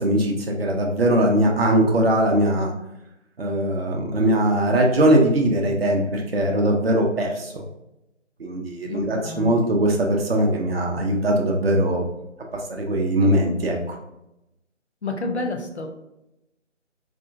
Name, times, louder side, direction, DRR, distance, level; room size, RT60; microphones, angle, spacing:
voice 1, 0.0-2.7 3.4-7.5 8.4-12.0 12.5-14.0, right 1 dB, 50° right, 0 dB, 0.6 m, -21 dB
voice 2, 8.8-9.6 15.0-15.9, left 2 dB, 60° left, 3 dB, 0.7 m, -30 dB
4.1 x 2.4 x 2.5 m, 0.88 s
figure-of-eight pair, 155°, 37 cm